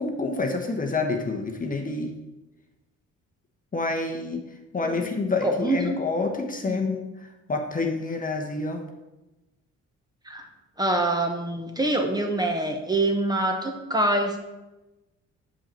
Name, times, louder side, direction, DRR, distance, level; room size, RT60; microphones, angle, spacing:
voice 1, 0.0-2.2 3.7-4.4 4.7-7.0 7.5-8.9, left 3 dB, 30° left, 3 dB, 0.9 m, -28 dB
voice 2, 4.8-5.9 6.7-6.8 10.3-10.5 10.8-14.4, right 1 dB, 15° right, 3 dB, 1.0 m, -25 dB
7.3 x 5.5 x 4.4 m, 1.0 s
cardioid pair, 90°, 30 cm